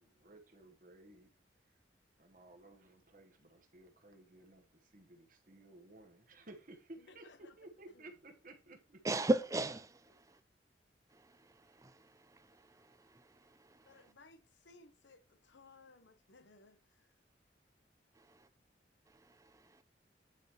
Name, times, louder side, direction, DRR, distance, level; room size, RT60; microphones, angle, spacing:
voice 1, 0.0-1.8 2.2-9.0, right 2 dB, 50° right, 1.3 m, -57 dB
voice 2, 7.0-7.6 7.9-8.1 13.8-17.1, left 3 dB, 85° left, 0.9 m, -61 dB
voice 3, 9.0-10.4 11.1-14.1 18.1-18.5 19.1-19.8, right 1 dB, 20° right, 0.4 m, -39 dB
9.3 x 4.9 x 3.0 m
head